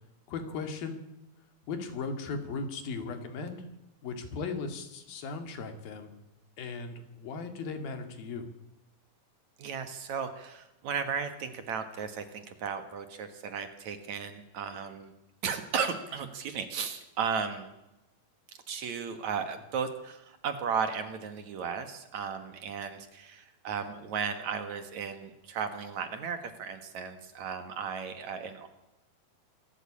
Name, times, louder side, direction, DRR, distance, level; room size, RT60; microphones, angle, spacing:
voice 1, 0.3-1.0 1.7-3.7 4.0-6.1 6.6-8.5, left 4 dB, 80° left, 7 dB, 4.1 m, -37 dB
voice 2, 9.6-15.1 15.4-17.7 18.7-28.7, right 6 dB, 60° right, 9 dB, 2.6 m, -35 dB
26.0 x 13.0 x 8.7 m, 0.95 s
omnidirectional pair, 4.1 m